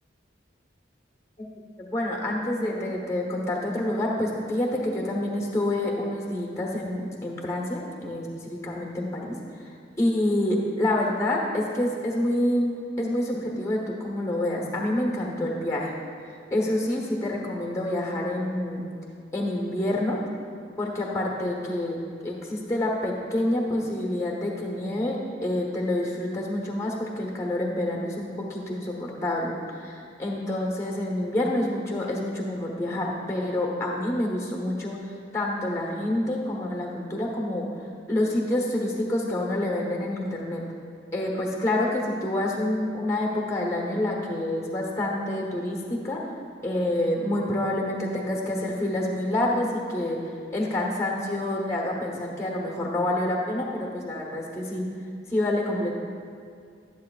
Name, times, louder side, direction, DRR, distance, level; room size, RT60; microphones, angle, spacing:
voice 1, 1.8-12.7 13.0-15.9 16.5-18.8 19.3-20.2 20.8-35.0 35.3-37.7 38.1-40.6 41.1-46.2 46.6-50.2 50.5-54.8 55.3-55.9, left 1 dB, 15° left, -1 dB, 1.1 m, -27 dB
12.0 x 10.5 x 2.4 m, 2.3 s
head